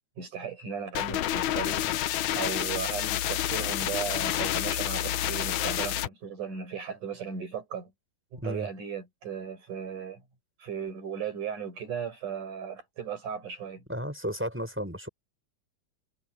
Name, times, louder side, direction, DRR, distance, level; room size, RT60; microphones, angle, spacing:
voice 1, 0.2-1.9 2.3-7.9 8.3-10.2 10.6-13.8, right 7 dB, 55° right, 7.2 m, -36 dB
sound 1, 0.9-6.1, left 12 dB, 70° left, 2.0 m, -29 dB
voice 2, 8.4-8.7 13.9-15.1, equal, 5° right, 6.5 m, -33 dB
omnidirectional pair, 4.2 m